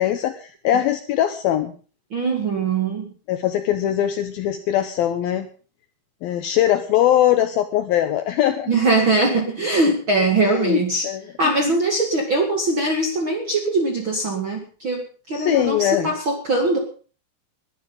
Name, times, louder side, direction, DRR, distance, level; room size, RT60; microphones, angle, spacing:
voice 1, 0.0-1.7 3.3-5.5 6.2-8.7 10.4-10.8 11.0-11.2 15.3-16.1, left 11 dB, 75° left, 9 dB, 2.2 m, -21 dB
voice 2, 2.1-3.1 8.7-11.1 11.4-16.8, right 2 dB, 45° right, 3 dB, 1.7 m, -21 dB
20.5 x 12.5 x 3.9 m, 0.38 s
omnidirectional pair, 5.2 m